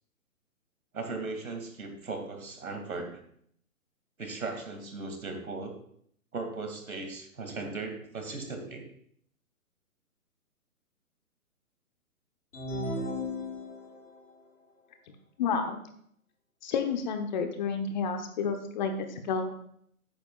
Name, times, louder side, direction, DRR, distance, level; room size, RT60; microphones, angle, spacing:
voice 1, 0.9-3.2 4.2-5.7 6.3-8.8, right 3 dB, 75° right, 5 dB, 2.4 m, -37 dB
sound 1, 12.5-14.1, left 1 dB, 75° left, 3.9 m, -35 dB
voice 2, 15.4-15.8 16.6-19.5, left 5 dB, 30° left, 6 dB, 1.1 m, -30 dB
12.0 x 9.0 x 2.4 m, 0.66 s
figure-of-eight pair, 130°, 43 cm